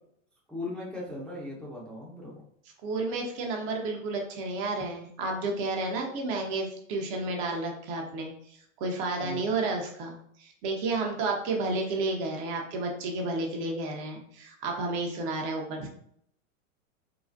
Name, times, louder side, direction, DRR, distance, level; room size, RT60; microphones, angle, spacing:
voice 1, 0.5-2.4 9.2-9.5, left 2 dB, ahead, -6 dB, 0.6 m, -38 dB
voice 2, 2.8-15.9, right 3 dB, 45° right, 1 dB, 0.8 m, -31 dB
3.8 x 2.1 x 2.5 m, 0.68 s
hypercardioid pair, 110°, 42 cm